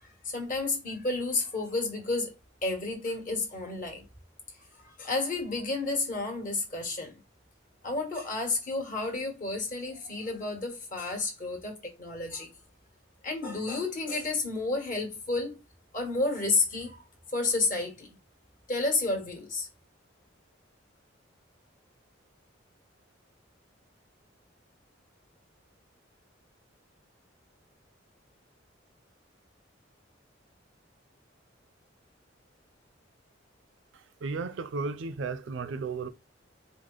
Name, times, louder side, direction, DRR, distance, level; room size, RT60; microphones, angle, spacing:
voice 1, 0.0-2.3 2.6-4.0 4.8-7.1 7.8-12.5 13.2-15.6 15.9-17.0 17.3-18.1 18.7-19.7, left 3 dB, 45° left, 1.4 m, -31 dB
voice 2, 34.2-36.1, right 4 dB, 65° right, 0.4 m, -34 dB
4.8 x 2.0 x 3.8 m
head